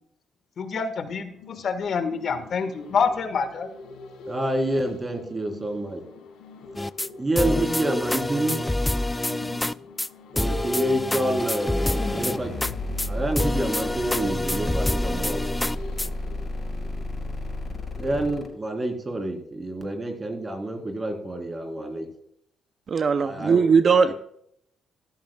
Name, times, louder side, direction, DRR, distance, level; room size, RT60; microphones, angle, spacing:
voice 1, 0.6-3.7, left 5 dB, 55° left, 8 dB, 1.5 m, -27 dB
sound 1, 1.1-17.3 17.7-17.8, left 2 dB, 80° left, 4.5 m, -44 dB
voice 2, 4.3-6.0 7.2-8.6 10.3-12.5 13.1-15.4 18.0-22.1 23.2-23.6 24.0-24.1, right 1 dB, 25° right, 4 dB, 3.6 m, -28 dB
sound 2, 6.8-7.1 7.4-9.7 10.0-10.1 10.4-12.7 13.0-13.1 13.4-16.1, left 1 dB, 10° left, 0.4 m, -26 dB
sound 3, 11.8-18.5, left 1 dB, 35° left, 4.9 m, -32 dB
voice 3, 22.9-24.1, right 5 dB, 45° right, 11 dB, 0.5 m, -19 dB
15.0 x 13.5 x 2.3 m, 0.71 s
cardioid pair, 90°, 0 cm